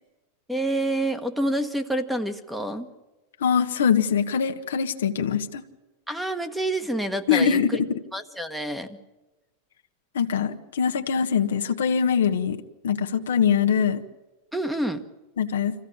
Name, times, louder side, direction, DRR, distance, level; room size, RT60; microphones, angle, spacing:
voice 1, 0.5-2.9 6.1-7.8 8.1-9.0 14.5-15.0, right 1 dB, 5° right, 8 dB, 1.4 m, -28 dB
voice 2, 3.4-5.6 7.3-8.0 10.1-14.0 15.4-15.7, left 7 dB, 85° left, 7 dB, 1.3 m, -23 dB
25.5 x 16.0 x 8.8 m, 1.1 s
hypercardioid pair, 115°, 0 cm